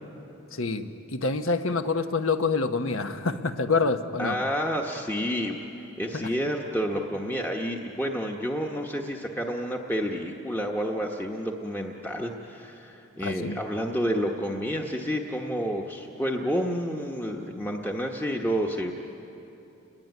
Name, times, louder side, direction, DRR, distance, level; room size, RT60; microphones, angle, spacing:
voice 1, 0.5-4.4 6.1-6.3 13.2-13.6, left 4 dB, 70° left, 8 dB, 1.2 m, -27 dB
voice 2, 4.2-18.9, equal, 10° left, 0 dB, 1.1 m, -30 dB
30.0 x 21.0 x 9.3 m, 3.0 s
head